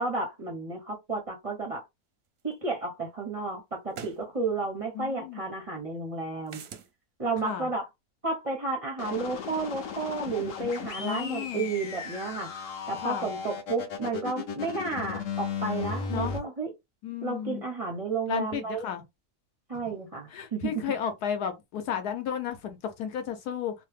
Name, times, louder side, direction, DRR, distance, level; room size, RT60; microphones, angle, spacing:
voice 1, 0.0-1.8 2.4-6.6 7.2-7.9 8.2-12.5 12.9-16.7 17.2-18.9 19.7-20.8, right 3 dB, 40° right, 0.5 m, -32 dB
sound 1, 2.5-2.6 3.9-4.2 6.5-6.9, right 7 dB, 65° right, 0.8 m, -42 dB
voice 2, 4.9-5.4 7.4-7.7 11.0-11.7 13.0-13.3 16.1-16.3 17.0-17.6 18.3-19.0 20.3-23.7, left 8 dB, 75° left, 1.2 m, -33 dB
sound 2, 9.0-16.4, left 6 dB, 60° left, 1.0 m, -36 dB
3.0 x 2.1 x 3.2 m
omnidirectional pair, 1.8 m